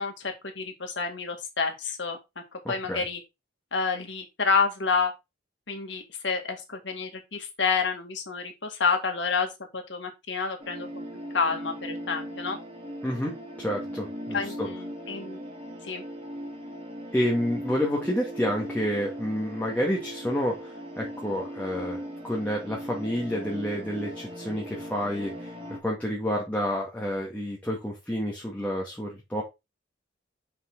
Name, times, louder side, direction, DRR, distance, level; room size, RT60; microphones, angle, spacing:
voice 1, 0.0-2.2 2.7-3.2 3.7-5.1 5.7-11.1 11.3-12.6 14.3-15.4 15.8-16.0, left 4 dB, 65° left, 2.0 m, -29 dB
voice 2, 2.6-3.0 13.0-14.7 17.1-25.5 25.8-29.4, equal, 10° left, 1.8 m, -29 dB
sound 1, 10.6-25.8, equal, 30° right, 1.4 m, -39 dB
6.0 x 5.5 x 3.9 m
head